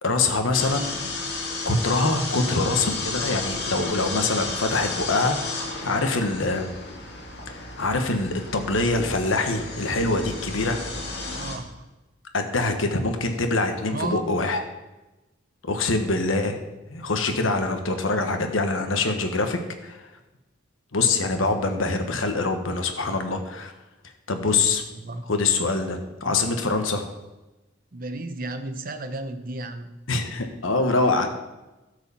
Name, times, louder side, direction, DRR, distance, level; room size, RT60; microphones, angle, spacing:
voice 1, 0.0-1.1 1.6-6.7 7.5-10.8 11.1-11.2 12.3-14.6 15.6-16.6 16.9-20.1 20.9-23.7 24.3-24.8 25.3-27.0 30.1-31.3, left 3 dB, 80° left, 6 dB, 1.2 m, -24 dB
sound 1, 0.5-11.6, left 3 dB, 55° left, 2.2 m, -33 dB
voice 2, 11.3-11.9 13.9-14.3 24.4-24.6 25.0-25.3 27.9-29.9, right 2 dB, 45° right, 8 dB, 0.8 m, -33 dB
12.5 x 4.9 x 7.0 m, 1.1 s
head